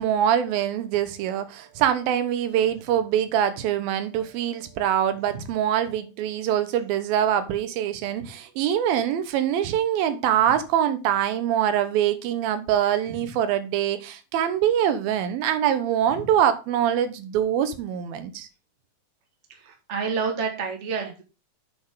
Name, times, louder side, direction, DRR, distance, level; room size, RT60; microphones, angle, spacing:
voice 1, 0.0-18.5, right 10 dB, 90° right, 2.8 m, -24 dB
voice 2, 19.5-21.2, right 5 dB, 30° right, 1.3 m, -29 dB
7.8 x 6.7 x 3.7 m
omnidirectional pair, 4.1 m